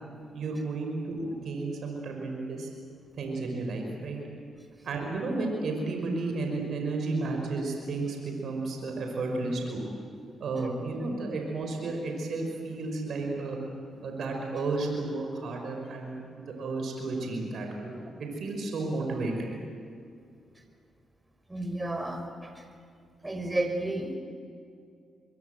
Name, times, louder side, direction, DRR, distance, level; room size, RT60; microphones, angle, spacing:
voice 1, 0.3-2.7 3.2-4.2 4.8-9.8 10.4-13.6 14.0-19.6, right 3 dB, 70° right, 2 dB, 5.2 m, -32 dB
voice 2, 21.5-22.6 23.2-24.2, right 1 dB, 20° right, 5 dB, 5.7 m, -32 dB
26.0 x 22.5 x 7.9 m, 2.4 s
supercardioid pair, 50°, 0 cm